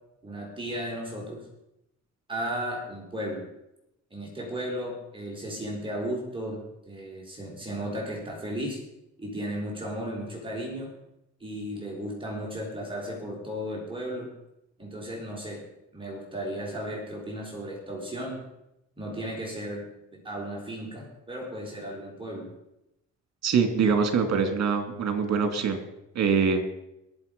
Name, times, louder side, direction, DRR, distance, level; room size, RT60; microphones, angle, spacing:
voice 1, 0.2-1.4 2.3-3.4 4.1-6.6 6.9-8.8 9.2-10.9 11.4-14.3 14.8-15.6 15.9-18.4 19.0-19.8 20.2-22.5, equal, 15° right, -2 dB, 4.6 m, -35 dB
voice 2, 23.4-25.8 26.1-26.6, right 5 dB, 60° right, 7 dB, 2.6 m, -24 dB
22.5 x 7.4 x 5.3 m, 0.88 s
cardioid pair, 90°, 30 cm